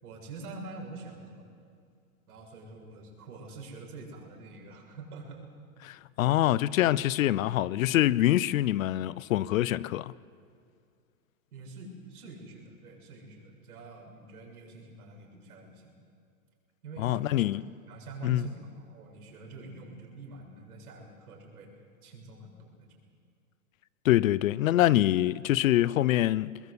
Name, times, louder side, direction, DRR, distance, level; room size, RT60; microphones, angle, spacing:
voice 1, 0.0-1.5 2.3-5.4 11.5-15.9 16.8-17.6 17.9-21.7 22.0-23.0, right 3 dB, 80° right, 7.6 m, -46 dB
voice 2, 5.9-10.1 17.0-17.6 18.2-18.4 24.0-26.6, left 14 dB, 60° left, 0.7 m, -25 dB
22.5 x 21.5 x 8.3 m
hypercardioid pair, 150°, 45 cm